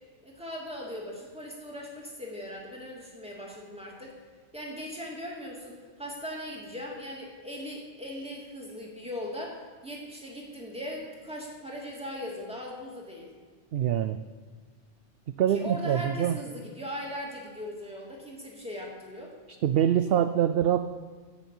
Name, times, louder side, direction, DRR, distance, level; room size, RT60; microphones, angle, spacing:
voice 1, 0.2-4.1 4.5-13.3 15.5-19.3, equal, 5° right, -2 dB, 2.5 m, -39 dB
voice 2, 13.7-14.2 15.4-16.4 19.6-20.8, right 10 dB, 65° right, 10 dB, 0.7 m, -24 dB
11.5 x 7.1 x 8.3 m, 1.5 s
omnidirectional pair, 1.2 m